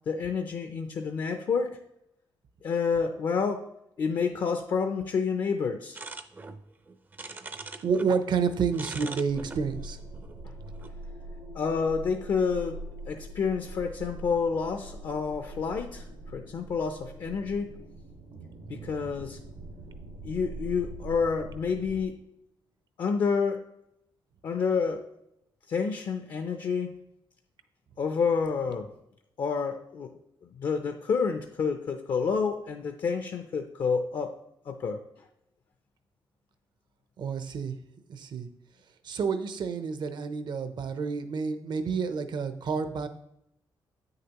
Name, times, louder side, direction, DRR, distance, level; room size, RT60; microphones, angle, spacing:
voice 1, 0.1-1.8 2.6-3.7 4.0-6.0 11.5-16.1 16.3-17.8 18.7-19.4 20.2-22.2 23.0-23.7 24.4-25.1 25.7-27.0 28.0-28.9 29.4-30.1 30.5-34.3 34.6-35.0, left 5 dB, 55° left, 6 dB, 0.5 m, -29 dB
sound 1, 5.9-8.1 8.4-10.9, right 3 dB, 20° right, 0.5 m, -42 dB
voice 2, 7.8-10.0 18.7-18.9 37.2-37.7 38.1-38.5 39.0-43.1, right 5 dB, 60° right, 10 dB, 0.7 m, -29 dB
sound 2, 9.3-22.0, right 1 dB, 85° right, 1.5 m, -43 dB
8.5 x 6.6 x 3.0 m, 0.81 s
cardioid pair, 120°, 9 cm